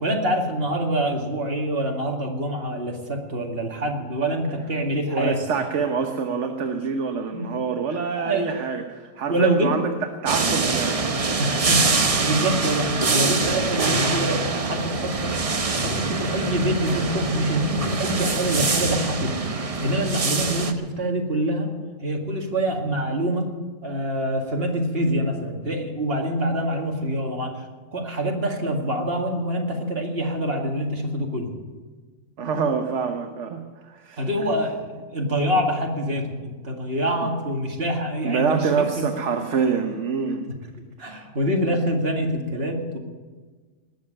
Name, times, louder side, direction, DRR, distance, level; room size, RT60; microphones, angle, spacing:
voice 1, 0.0-5.4 7.3-7.5 7.9-8.5 9.3-9.7 11.4-21.7 22.0-23.5 23.8-27.7 27.9-31.5 34.2-34.8 35.1-39.1 41.0-43.0, right 1 dB, 50° right, 1 dB, 2.4 m, -25 dB
voice 2, 5.1-9.9 10.2-11.0 32.4-34.2 37.0-37.1 38.2-40.5, right 5 dB, 65° right, 5 dB, 1.3 m, -26 dB
sound 1, 10.3-20.7, right 3 dB, 30° right, 0.8 m, -24 dB
19.5 x 7.6 x 8.9 m, 1.4 s
omnidirectional pair, 1.4 m